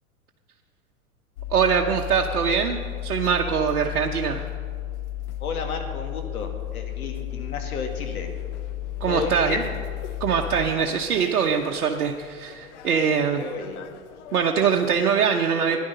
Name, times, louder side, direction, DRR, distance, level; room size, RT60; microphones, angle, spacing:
sound 1, 1.4-15.0, left 13 dB, 50° left, 0.9 m, -35 dB
voice 1, 1.5-4.4 9.0-9.6 10.2-13.4 14.3-15.8, right 6 dB, 70° right, 1 dB, 1.0 m, -23 dB
voice 2, 5.4-8.3 9.1-9.6 13.4-13.9, left 4 dB, 75° left, 4 dB, 2.0 m, -32 dB
13.0 x 10.5 x 5.4 m, 2.1 s
hypercardioid pair, 110°, 44 cm